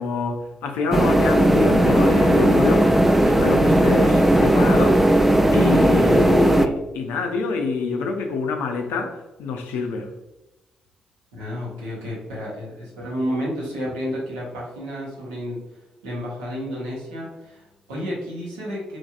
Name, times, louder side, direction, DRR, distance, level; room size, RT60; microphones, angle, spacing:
voice 1, 0.0-2.9 3.2-5.0 5.5-10.1, left 4 dB, 70° left, 0.4 m, -25 dB
sound 1, 0.9-6.7, right 1 dB, 5° right, 0.3 m, -17 dB
sound 2, 1.2-5.5, right 2 dB, 40° right, 0.6 m, -38 dB
voice 2, 11.3-19.0, equal, 80° right, 1.0 m, -31 dB
3.1 x 2.6 x 2.4 m
hypercardioid pair, 40°, 3 cm